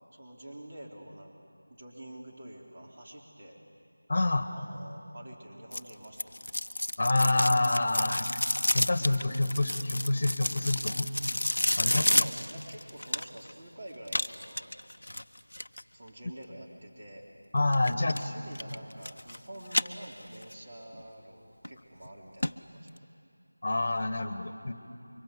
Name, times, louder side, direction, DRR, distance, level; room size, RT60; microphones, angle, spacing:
voice 1, 0.1-1.4 1.7-3.6 4.5-6.4 11.8-14.7 15.9-17.3 17.9-22.9, right 1 dB, 30° right, -2 dB, 3.6 m, -47 dB
voice 2, 4.1-4.5 7.0-8.4 8.7-11.1 11.8-12.0 17.5-18.2 23.6-24.7, left 2 dB, 40° left, 9 dB, 1.6 m, -27 dB
sound 1, 5.7-13.5 14.1-15.8 17.7-18.2 18.6-19.4 19.7-20.5 20.9-21.0 21.6-21.7 22.1-22.2 22.4-22.5 22.9-23.0, left 1 dB, 90° left, 0.8 m, -30 dB
26.0 x 24.0 x 8.4 m, 2.7 s
figure-of-eight pair, 175°, 0 cm